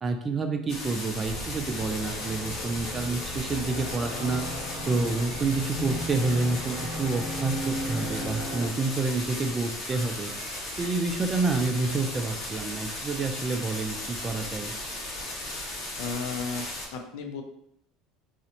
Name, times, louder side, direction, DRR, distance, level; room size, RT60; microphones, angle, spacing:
voice 1, 0.0-4.4 4.8-10.3 10.8-14.7, right 3 dB, 25° right, 5 dB, 0.4 m, -28 dB
sound 1, 0.7-16.9, left 1 dB, 55° left, 1.0 m, -36 dB
sound 2, 1.2-8.7, equal, 35° left, 1.2 m, -36 dB
sound 3, 3.2-12.7, right 2 dB, 65° right, 0.8 m, -52 dB
voice 2, 16.0-17.4, left 5 dB, 75° left, 4 dB, 0.4 m, -34 dB
2.5 x 2.1 x 2.8 m, 0.72 s
supercardioid pair, 110°, 0 cm